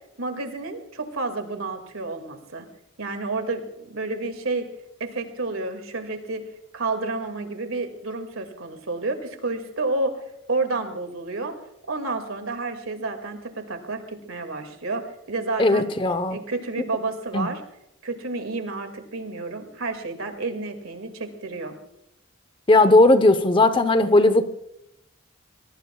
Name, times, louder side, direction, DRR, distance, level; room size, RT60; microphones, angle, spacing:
voice 1, 0.2-2.7 3.0-4.7 5.0-6.4 6.7-10.1 10.5-11.5 11.9-15.9 16.3-17.6 18.0-21.7, right 3 dB, 85° right, 7 dB, 2.2 m, -30 dB
voice 2, 15.6-16.4 17.3-17.5 22.7-24.6, left 2 dB, 25° left, 11 dB, 0.8 m, -17 dB
24.5 x 18.5 x 2.3 m, 0.80 s
head